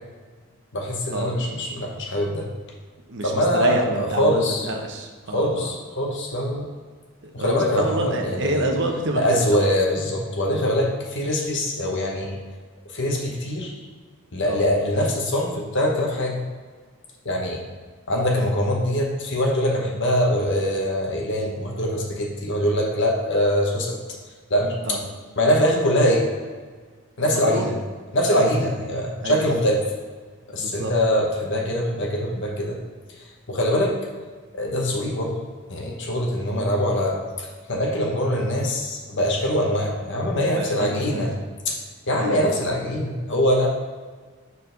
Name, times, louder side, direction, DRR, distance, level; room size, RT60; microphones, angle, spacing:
voice 1, 0.7-2.5 3.2-4.7 5.3-6.7 7.3-8.7 9.2-12.4 12.9-13.7 14.3-16.4 17.2-17.6 18.1-24.0 24.5-25.0 25.4-26.2 27.2-27.7 28.1-29.8 30.5-32.8 33.5-34.0 34.5-35.4 35.7-41.3 41.6-41.8 42.1-43.7, equal, 55° left, 0 dB, 1.1 m, -23 dB
voice 2, 3.1-5.7 7.2-9.7 14.5-14.6 24.8-25.0 27.5-27.7 28.4-28.5 29.2-29.4 30.6-30.9 40.5-41.3 42.2-42.4, right 1 dB, 55° right, 2 dB, 0.8 m, -28 dB
4.6 x 4.1 x 5.1 m, 1.5 s
head